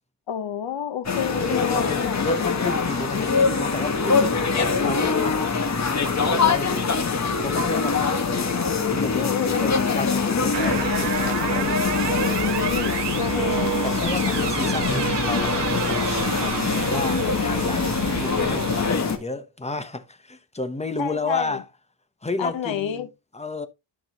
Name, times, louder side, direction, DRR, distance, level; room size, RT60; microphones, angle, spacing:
voice 1, 0.3-2.6 9.1-9.7 12.2-13.8 16.4-16.5 21.0-21.6 22.4-23.1, left 8 dB, 85° left, 1.2 m, -29 dB
sound 1, 1.1-19.2, left 5 dB, 35° left, 1.7 m, -23 dB
voice 2, 1.7-7.0 7.4-8.5 8.9-9.3 9.6-12.5 13.8-21.6 22.2-23.1 23.3-23.7, left 2 dB, 15° left, 0.9 m, -32 dB
sound 2, 10.5-18.9, right 13 dB, 70° right, 0.6 m, -30 dB
12.0 x 6.0 x 3.0 m
wide cardioid pair, 130°, 44 cm